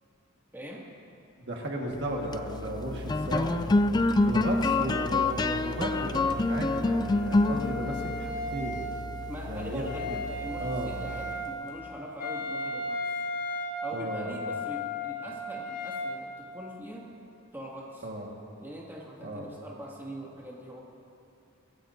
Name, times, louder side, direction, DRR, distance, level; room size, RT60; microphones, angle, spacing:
voice 1, 0.5-0.8 3.3-3.6 9.3-13.2 13.8-17.1 17.5-18.1 18.6-20.8, right 1 dB, 10° right, -4 dB, 2.1 m, -42 dB
voice 2, 1.5-3.7 4.2-8.8 9.5-10.2 10.6-10.9 13.9-14.4 18.0-18.3 19.2-19.5, right 1 dB, 55° right, -1 dB, 1.6 m, -35 dB
sound 1, 2.1-11.7, left 2 dB, 20° left, 0.3 m, -28 dB
Wind instrument woodwind instrument, 6.1-16.1, left 1 dB, 45° left, 1.3 m, -36 dB
23.5 x 16.0 x 2.7 m, 2.8 s
head